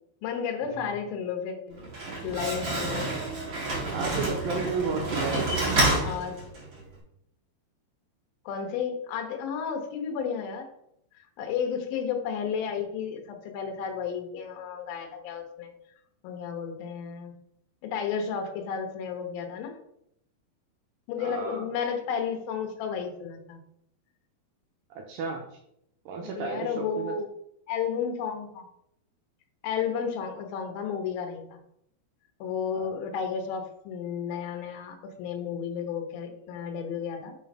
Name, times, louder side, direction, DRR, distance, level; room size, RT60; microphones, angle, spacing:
voice 1, 0.2-1.8 2.2-3.1 4.7-5.3 5.8-6.4 8.5-10.7 11.4-15.7 16.2-17.3 17.8-19.7 21.1-23.6 26.2-27.3 27.7-28.7 29.6-31.6 32.4-37.4, left 7 dB, 75° left, 3 dB, 2.6 m, -32 dB
Slam, 1.7-6.8, right 2 dB, 40° right, 1.9 m, -29 dB
voice 2, 3.9-5.7 21.2-21.6 24.9-25.6 26.1-27.1 32.7-32.9, right 5 dB, 80° right, 1 dB, 2.2 m, -33 dB
6.0 x 3.8 x 5.3 m, 0.76 s
omnidirectional pair, 4.5 m